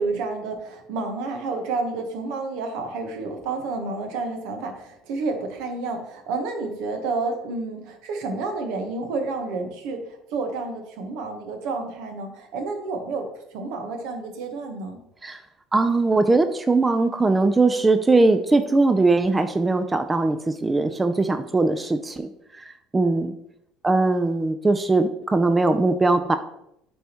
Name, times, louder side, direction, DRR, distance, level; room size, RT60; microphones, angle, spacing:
voice 1, 0.0-13.3 13.5-15.0, right 3 dB, 75° right, 5 dB, 1.0 m, -30 dB
voice 2, 15.7-22.3 22.6-23.3 23.8-26.4, right 3 dB, 15° right, 8 dB, 0.4 m, -20 dB
9.2 x 3.5 x 2.9 m, 0.78 s
supercardioid pair, 100°, 0 cm